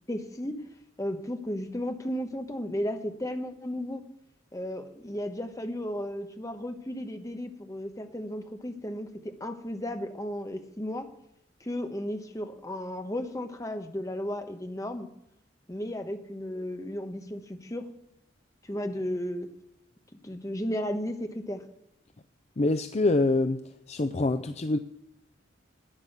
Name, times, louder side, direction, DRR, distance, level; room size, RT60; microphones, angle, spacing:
voice 1, 0.1-0.6 1.0-4.0 4.5-11.1 11.6-15.1 15.7-17.9 18.6-19.5 20.2-21.6, equal, 20° left, 6 dB, 1.1 m, -34 dB
voice 2, 22.6-23.6 23.9-24.8, left 2 dB, 35° left, 10 dB, 0.5 m, -25 dB
11.5 x 9.8 x 6.6 m, 0.80 s
head